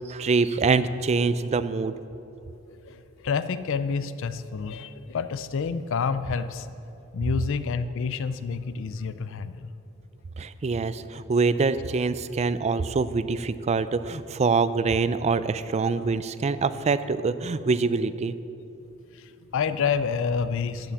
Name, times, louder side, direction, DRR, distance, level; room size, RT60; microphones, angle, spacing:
voice 1, 0.1-1.9 10.4-18.3, right 4 dB, 30° right, 14 dB, 0.4 m, -25 dB
voice 2, 2.8-6.7 7.1-9.7 19.1-20.9, left 5 dB, 65° left, 13 dB, 0.4 m, -28 dB
14.5 x 5.8 x 7.1 m, 2.9 s
head